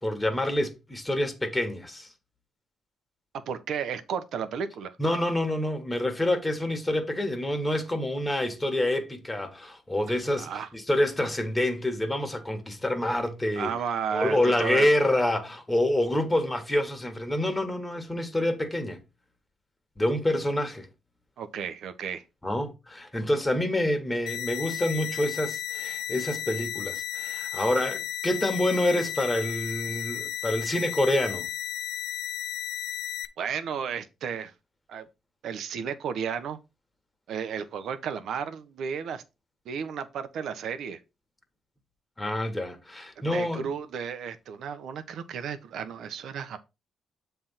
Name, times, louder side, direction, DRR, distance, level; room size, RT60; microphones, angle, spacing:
voice 1, 0.0-2.1 5.0-13.7 14.1-19.0 20.0-20.9 22.4-31.5 42.2-43.6, left 1 dB, 15° left, 1.6 m, -27 dB
voice 2, 3.5-5.0 10.4-10.7 13.6-14.9 21.4-22.2 33.4-34.5 34.9-35.1 35.4-36.6 37.3-39.2 39.6-41.0 43.3-46.6, right 7 dB, 70° right, 0.9 m, -33 dB
sound 1, 24.3-33.3, left 12 dB, 80° left, 0.5 m, -34 dB
7.4 x 3.4 x 5.7 m
cardioid pair, 90°, 0 cm